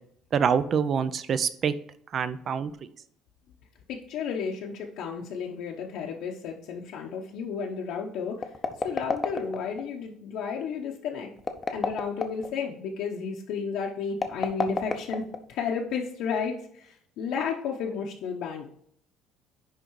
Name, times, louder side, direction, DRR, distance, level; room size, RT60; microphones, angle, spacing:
voice 1, 0.3-1.7 2.1-2.7, right 7 dB, 35° right, 14 dB, 0.5 m, -25 dB
voice 2, 3.9-11.3 11.7-15.2 15.5-18.7, left 6 dB, 60° left, -1 dB, 0.9 m, -32 dB
sound 1, 8.3-9.8 11.4-12.5 14.1-15.7, left 4 dB, 20° left, 0.7 m, -30 dB
10.5 x 3.8 x 4.6 m, 0.66 s
cardioid pair, 170°, 0 cm